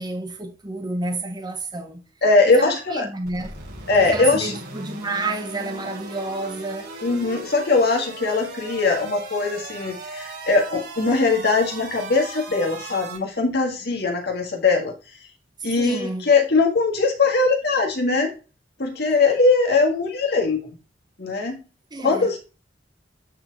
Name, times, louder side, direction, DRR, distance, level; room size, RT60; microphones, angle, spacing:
voice 1, 0.0-2.0 2.5-3.5 4.0-6.9 15.8-16.3 21.9-22.3, right 2 dB, 25° right, 0.8 m, -30 dB
voice 2, 2.2-3.1 3.9-4.5 7.0-14.9 15.6-18.3 18.8-20.6 21.2-21.6 22.0-22.4, left 3 dB, 60° left, 1.7 m, -20 dB
sound 1, 3.2-13.2, right 2 dB, 55° right, 4.7 m, -38 dB
8.2 x 4.5 x 3.9 m
head